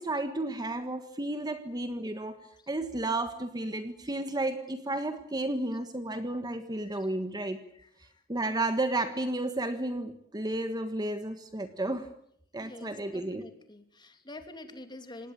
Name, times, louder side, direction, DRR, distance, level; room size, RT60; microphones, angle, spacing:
voice 1, 0.0-2.4 2.7-7.6 8.3-12.1 12.5-13.5, right 2 dB, 20° right, 9 dB, 1.5 m, -32 dB
voice 2, 12.6-15.3, left 2 dB, 20° left, 7 dB, 3.0 m, -46 dB
26.5 x 19.5 x 8.7 m, 0.69 s
head